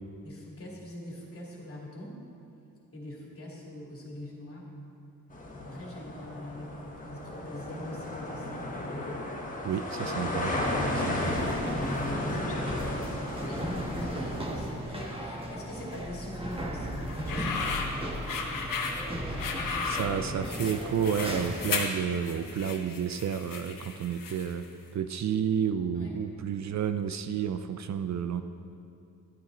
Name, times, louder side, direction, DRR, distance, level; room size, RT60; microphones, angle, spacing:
voice 1, 0.2-2.2 2.9-4.7 5.6-8.7 10.0-10.4 10.8-19.1 19.9-20.2 25.9-26.2, left 1 dB, 40° left, -3 dB, 2.6 m, -43 dB
sound 1, 5.3-14.4, left 1 dB, 25° left, 1.4 m, -34 dB
voice 2, 9.6-10.6 10.9-11.5 19.8-28.4, right 8 dB, 55° right, 9 dB, 0.5 m, -31 dB
sound 2, 11.2-21.7, right 1 dB, 15° right, 1.4 m, -36 dB
sound 3, 17.1-24.6, left 5 dB, 75° left, 1.1 m, -35 dB
12.5 x 9.1 x 3.9 m, 2.7 s
cardioid pair, 95°, 34 cm